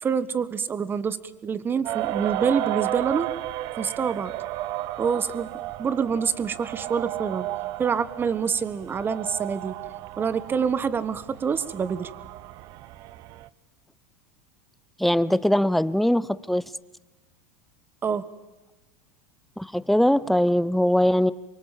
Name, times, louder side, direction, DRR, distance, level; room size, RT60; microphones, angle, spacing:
voice 1, 0.0-1.2 1.4-3.3 3.8-4.3 5.0-5.5 5.8-7.5 7.8-9.7 10.2-12.1 18.0-18.2, right 6 dB, 25° right, 14 dB, 1.6 m, -26 dB
sound 1, 1.8-13.5, right 15 dB, 50° right, 0.9 m, -33 dB
voice 2, 15.0-16.6 19.6-21.3, equal, ahead, 18 dB, 0.9 m, -21 dB
28.0 x 24.0 x 7.5 m, 1.1 s
hypercardioid pair, 90°, 8 cm